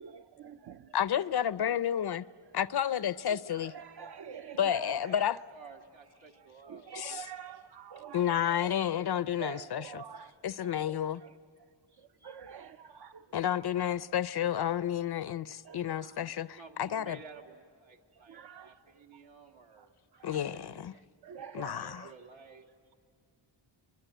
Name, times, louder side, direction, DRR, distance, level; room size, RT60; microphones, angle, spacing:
voice 1, 0.0-1.0 3.5-5.1 6.6-8.7 9.4-10.3 10.6-10.7 11.2-11.3 12.2-13.2 15.6-16.1 18.3-18.7 20.2-20.6 21.2-22.1, right 8 dB, 55° right, 0.7 m, -46 dB
voice 2, 0.9-2.2 2.5-3.7 4.6-5.4 6.9-7.3 8.1-10.0 10.4-11.2 13.3-17.2 20.2-20.9 21.5-22.1, left 10 dB, 55° left, 0.6 m, -31 dB
voice 3, 5.5-7.2 16.2-19.9 21.6-22.9, right 5 dB, 75° right, 2.7 m, -54 dB
24.0 x 23.5 x 9.1 m
wide cardioid pair, 155°, 47 cm